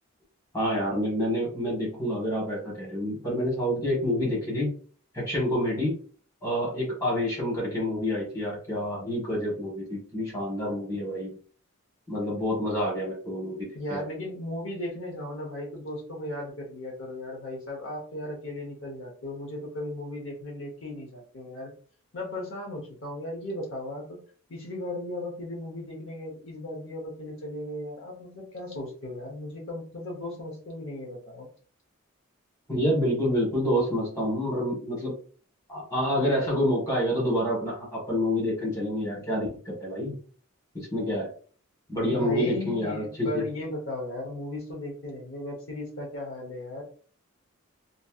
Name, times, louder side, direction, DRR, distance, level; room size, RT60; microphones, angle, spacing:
voice 1, 0.5-4.8 5.1-6.0 6.4-11.3 12.1-14.0 32.7-35.1 35.7-40.2 40.7-41.3 41.9-43.4, equal, 15° left, -4 dB, 1.3 m, -28 dB
voice 2, 13.7-21.7 22.1-24.2 24.5-31.5 42.1-46.8, left 1 dB, 65° left, -1 dB, 0.9 m, -36 dB
3.1 x 2.6 x 2.3 m, 0.43 s
head